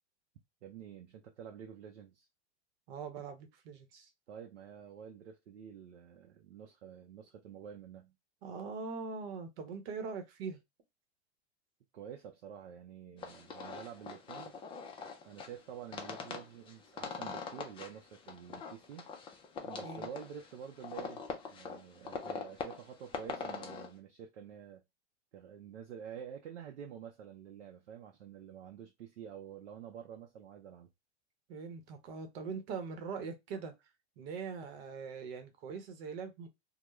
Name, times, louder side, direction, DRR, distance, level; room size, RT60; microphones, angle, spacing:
voice 1, 0.6-2.3 4.3-8.1 11.9-14.5 15.2-19.1 19.6-21.2 21.5-24.8 25.3-30.9, right 8 dB, 85° right, 0.6 m, -49 dB
voice 2, 2.9-4.1 8.4-10.6 19.8-20.1 31.5-33.7 34.2-36.5, right 5 dB, 60° right, 0.9 m, -42 dB
sound 1, 13.2-23.9, left 5 dB, 15° left, 0.4 m, -43 dB
2.2 x 2.1 x 3.0 m
hypercardioid pair, 105°, 34 cm